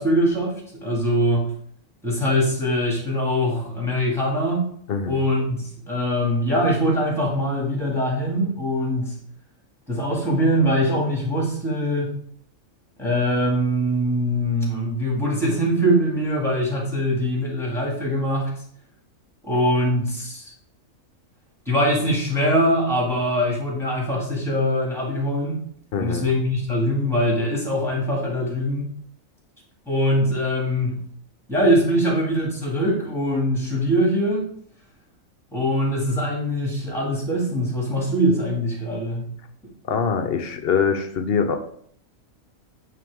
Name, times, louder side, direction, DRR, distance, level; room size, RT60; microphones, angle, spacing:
voice 1, 0.0-1.5 2.0-4.7 5.1-9.2 9.9-12.1 13.0-18.5 19.4-20.4 21.7-25.6 26.0-28.9 29.9-31.0 31.5-34.5 35.5-39.3, equal, ahead, -2 dB, 2.1 m, -22 dB
voice 2, 4.9-5.2 25.9-26.3 39.9-41.6, left 6 dB, 55° left, 8 dB, 0.7 m, -23 dB
9.1 x 3.4 x 3.5 m, 0.62 s
omnidirectional pair, 1.4 m